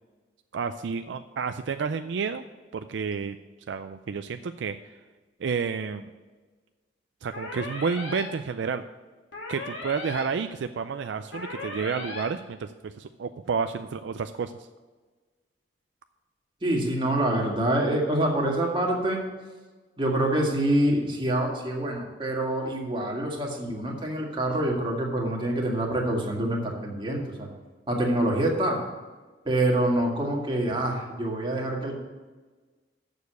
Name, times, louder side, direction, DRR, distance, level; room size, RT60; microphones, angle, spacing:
voice 1, 0.5-2.4 2.7-3.4 3.7-4.9 5.4-6.1 7.2-8.8 9.5-14.5, right 5 dB, 70° right, 9 dB, 0.4 m, -30 dB
sound 1, 7.3-8.2 9.3-10.2 11.3-12.2, left 2 dB, 75° left, 2.8 m, -37 dB
voice 2, 16.6-19.2 20.0-27.5 27.9-28.8 29.5-32.0, right 1 dB, 25° right, -1 dB, 1.9 m, -26 dB
7.2 x 6.6 x 7.9 m, 1.3 s
head